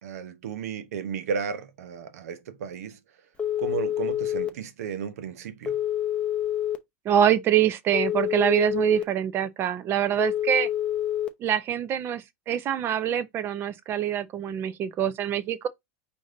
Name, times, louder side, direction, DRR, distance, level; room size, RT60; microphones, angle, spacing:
voice 1, 0.0-3.0 3.6-5.8, right 6 dB, 90° right, 0.8 m, -34 dB
Telephone, 3.4-4.5 5.7-6.8 7.9-9.0 10.2-11.3, left 11 dB, 15° left, 0.6 m, -27 dB
voice 2, 7.0-10.7 11.4-15.7, right 10 dB, 30° right, 0.5 m, -25 dB
4.9 x 2.6 x 3.8 m
supercardioid pair, 145°, 8 cm